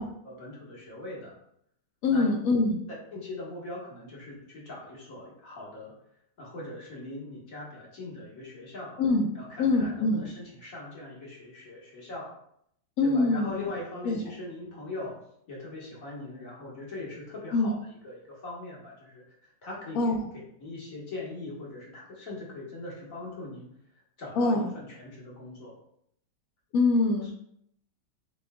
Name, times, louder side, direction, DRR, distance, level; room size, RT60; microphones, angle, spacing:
voice 1, 0.0-1.3 2.1-2.3 3.1-5.9 6.4-9.0 9.3-12.3 13.0-15.2 15.5-19.2 19.6-20.2 20.6-23.7 24.2-25.7 27.2-27.3, left 2 dB, 50° left, -5 dB, 1.6 m, -41 dB
voice 2, 2.0-2.8 9.0-9.3 9.6-10.3 13.0-13.7 14.0-14.2 17.5-17.7 20.0-20.2 24.4-24.7 26.7-27.3, left 3 dB, 70° left, 3 dB, 0.8 m, -24 dB
6.9 x 3.2 x 2.2 m, 0.71 s
omnidirectional pair, 1.9 m